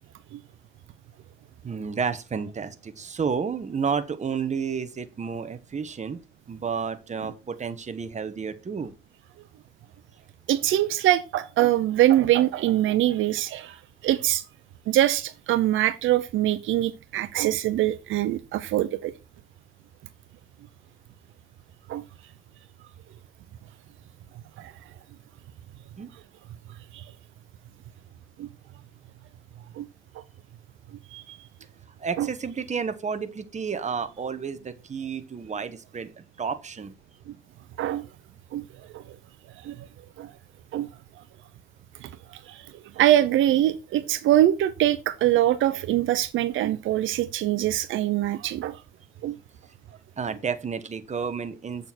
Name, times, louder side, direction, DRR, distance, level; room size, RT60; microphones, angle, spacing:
voice 1, 1.6-6.2 6.5-8.9 26.0-26.1 32.0-36.1 36.4-36.9 50.2-51.9, right 6 dB, 35° right, 1.3 m, -31 dB
voice 2, 10.5-13.8 14.0-14.4 14.9-19.1 21.9-22.0 24.6-24.7 26.9-27.0 28.4-28.5 29.8-29.9 31.1-31.4 32.2-32.3 37.8-38.1 38.5-38.6 38.9-39.0 39.6-39.8 40.2-40.3 40.7-40.9 42.0-42.6 43.0-48.8 49.2-49.4, right 13 dB, 80° right, 0.7 m, -23 dB
8.0 x 6.8 x 4.3 m
cardioid pair, 90°, 20 cm